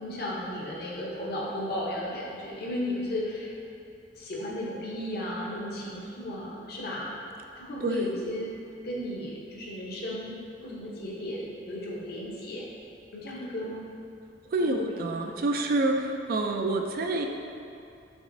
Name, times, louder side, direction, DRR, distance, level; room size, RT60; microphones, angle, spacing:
voice 1, 0.0-3.5 4.2-7.1 7.6-12.7 13.1-13.9 14.6-14.8, left 1 dB, 60° left, -4 dB, 0.8 m, -34 dB
voice 2, 7.8-8.1 14.5-17.3, right 2 dB, 55° right, 3 dB, 0.3 m, -27 dB
6.1 x 3.0 x 2.6 m, 2.6 s
head